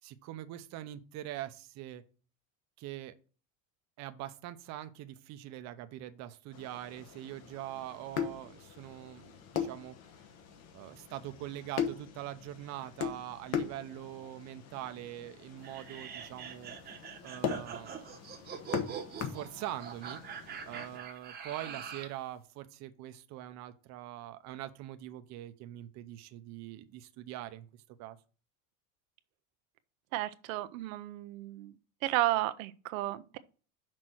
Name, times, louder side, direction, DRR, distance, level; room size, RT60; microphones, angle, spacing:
voice 1, 0.0-2.0 2.8-3.1 4.0-10.0 10.7-16.7 17.2-18.0 19.2-20.2 20.6-28.2, right 13 dB, 45° right, 0.7 m, -43 dB
sound 1, 6.5-21.0, left 8 dB, 40° left, 1.0 m, -40 dB
sound 2, 15.6-22.2, right 7 dB, 25° right, 1.0 m, -43 dB
voice 2, 30.1-31.7 32.0-33.4, right 16 dB, 85° right, 0.7 m, -33 dB
6.1 x 4.3 x 6.2 m
cardioid pair, 150°, 39 cm